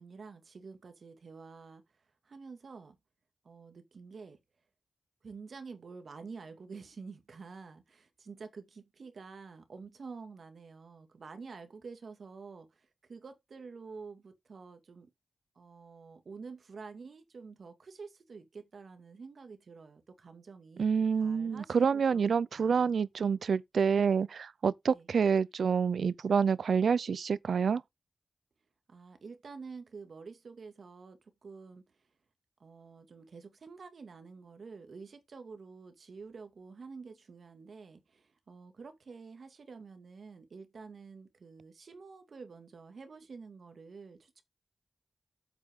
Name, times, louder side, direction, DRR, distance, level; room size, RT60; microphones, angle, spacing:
voice 1, 0.0-1.8 2.2-3.0 3.4-4.4 5.2-15.1 15.6-20.9 21.2-22.9 24.9-25.1 28.9-32.1 32.6-44.4, right 4 dB, 70° right, 2.2 m, -49 dB
voice 2, 20.8-27.8, right 6 dB, 85° right, 0.5 m, -28 dB
8.2 x 8.0 x 3.7 m
wide cardioid pair, 80°, 0 cm